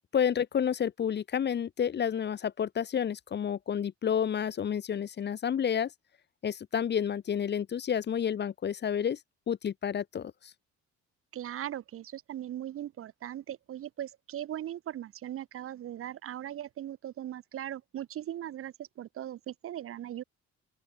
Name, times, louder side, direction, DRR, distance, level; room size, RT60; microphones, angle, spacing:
voice 1, 0.1-5.9 6.4-9.2 9.5-10.3, left 8 dB, 35° left, 0.5 m, -30 dB
voice 2, 11.3-20.2, right 11 dB, 50° right, 0.5 m, -39 dB
open air
cardioid pair, 90°, 30 cm